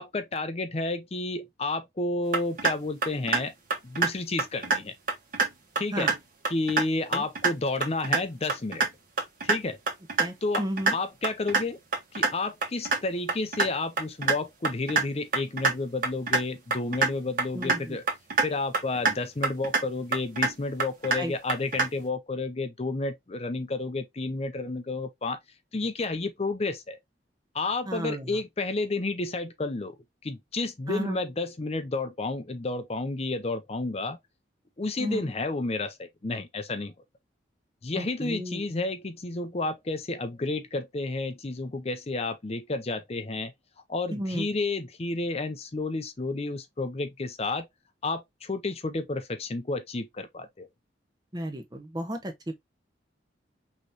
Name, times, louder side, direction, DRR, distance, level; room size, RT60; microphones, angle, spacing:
voice 1, 0.0-3.5 3.8-4.9 5.8-6.1 6.5-8.9 9.4-9.8 10.4-10.6 10.9-11.8 12.1-18.1 18.4-25.4 25.7-27.0 27.5-30.0 30.2-34.2 34.8-36.9 37.8-43.5 43.9-47.7 48.0-50.7, left 3 dB, 35° left, 0.6 m, -31 dB
sound 1, 2.3-2.7 3.0-3.4 3.7-4.1 4.4-4.8 5.1-5.5 5.8-6.2 6.4-6.8 7.1-7.5 7.8-8.2 8.5-8.9 9.2-9.6 9.9-10.3 10.5-10.9 11.2-11.6 11.9-12.3 12.6-13.0 13.3-13.7 14.0-14.4 14.6-15.0 15.3-15.7 16.0-16.4 16.7-17.1 17.4-17.8 18.1-18.5 18.7-19.1 19.4-19.8 20.1-20.5 20.8-21.2 21.5-21.9, right 4 dB, 50° right, 1.6 m, -24 dB
voice 2, 10.2-11.0 17.5-18.0 21.2-21.3 27.9-28.4 30.9-31.2 35.0-35.3 38.0-38.6 44.1-44.5 51.3-52.5, right 1 dB, 20° right, 1.0 m, -33 dB
5.6 x 3.1 x 2.8 m
head